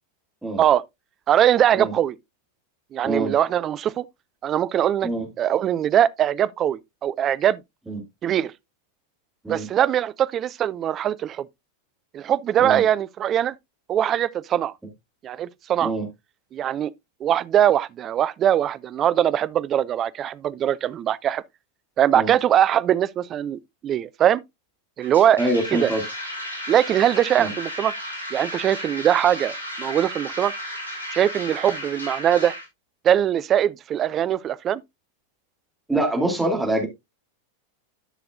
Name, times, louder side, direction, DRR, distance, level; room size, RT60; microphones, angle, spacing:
voice 1, 1.3-2.2 2.9-4.1 4.4-5.1 5.4-7.6 8.2-8.5 9.5-11.5 12.1-13.5 13.9-14.7 15.2-15.9 16.5-16.9 17.2-21.4 22.0-24.4 25.0-25.4 25.7-25.9 26.7-27.9 28.3-30.5 31.1-32.5 33.0-34.8, right 10 dB, 30° right, 0.4 m, -21 dB
sound 1, 25.0-32.7, equal, 85° right, 3.0 m, -34 dB
voice 2, 25.4-26.0 27.4-27.5 35.9-36.9, right 1 dB, 5° right, 2.7 m, -24 dB
12.0 x 5.9 x 2.5 m
figure-of-eight pair, 90°, 0 cm